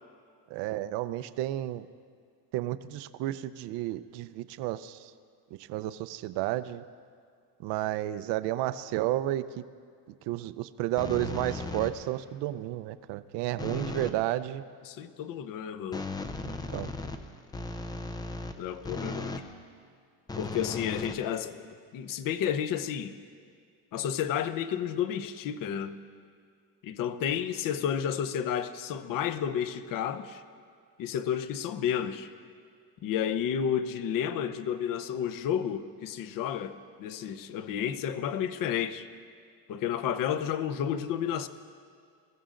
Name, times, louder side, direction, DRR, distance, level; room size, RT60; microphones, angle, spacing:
voice 1, 0.5-1.9 2.5-5.1 5.7-6.8 7.6-9.6 10.3-14.6 16.5-16.9, right 14 dB, 70° right, 0.6 m, -32 dB
sound 1, 11.0-12.2 13.6-14.2 15.9-19.5 20.3-21.8, left 3 dB, 10° left, 0.4 m, -37 dB
voice 2, 14.8-16.0 18.6-19.4 20.4-21.7 21.9-23.1 23.9-26.0 26.8-30.4 31.0-32.3 33.0-39.1 39.7-41.5, left 9 dB, 45° left, 0.8 m, -31 dB
22.5 x 15.5 x 3.8 m
cardioid pair, 155°, 44 cm